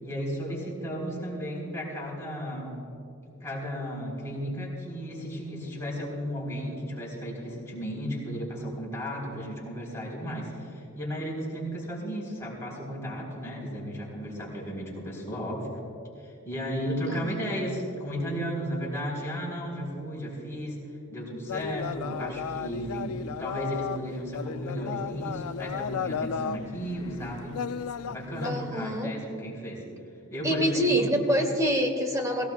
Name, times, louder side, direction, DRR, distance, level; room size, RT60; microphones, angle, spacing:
voice 1, 0.0-2.8 3.4-15.7 16.2-20.8 21.1-27.6 28.0-29.8 30.3-31.1, equal, 15° left, -5 dB, 3.9 m, -34 dB
voice 2, 17.1-17.4 28.4-29.1 30.4-32.5, equal, 15° right, 4 dB, 1.3 m, -26 dB
sound 1, 21.5-28.5, left 6 dB, 75° left, 0.4 m, -34 dB
22.5 x 16.0 x 2.4 m, 2.5 s
head